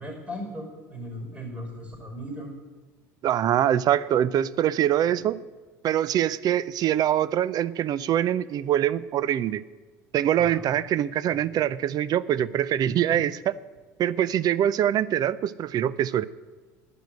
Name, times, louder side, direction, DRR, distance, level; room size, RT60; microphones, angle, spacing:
voice 1, 0.0-2.5 5.1-5.3 10.4-10.7 13.1-13.2, equal, 15° right, 2 dB, 5.4 m, -37 dB
voice 2, 3.2-5.4 5.8-9.6 10.1-13.4 14.0-16.2, right 11 dB, 45° right, 18 dB, 0.6 m, -24 dB
10.5 x 10.0 x 7.8 m, 1.3 s
hypercardioid pair, 75°, 9 cm